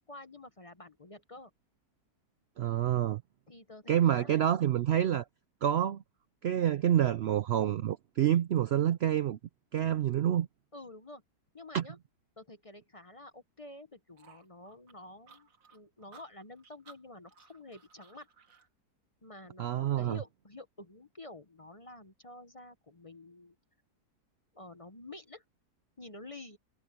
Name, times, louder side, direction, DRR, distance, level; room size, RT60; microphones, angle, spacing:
voice 1, 0.0-1.5 3.5-4.4 10.7-11.2 11.5-12.0 12.4-18.3 19.2-23.6 24.5-25.4 26.0-26.6, left 2 dB, 25° left, 0.8 m, -49 dB
voice 2, 2.6-3.2 3.9-5.2 5.6-6.0 6.4-9.4 9.7-10.5 11.7-11.8 19.6-20.2, right 11 dB, 85° right, 0.5 m, -27 dB
sound 1, 14.2-18.7, right 5 dB, 60° right, 2.1 m, -58 dB
omnidirectional pair, 1.7 m